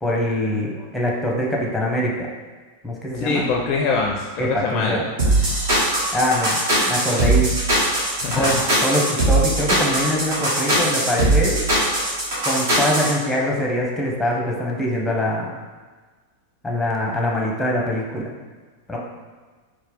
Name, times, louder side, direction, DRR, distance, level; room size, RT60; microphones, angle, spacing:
voice 1, 0.0-2.3 2.8-3.5 4.4-5.0 6.1-6.6 6.9-7.6 8.3-8.5 8.8-11.6 12.4-15.6 16.6-18.3 18.9-19.0, equal, 5° left, -2 dB, 0.8 m, -23 dB
voice 2, 3.1-5.0 8.2-8.6, left 4 dB, 40° left, 0 dB, 0.4 m, -23 dB
sound 1, 5.2-13.1, right 1 dB, 55° right, 1.2 m, -20 dB
4.2 x 2.2 x 3.5 m, 1.4 s
figure-of-eight pair, 90°, 0 cm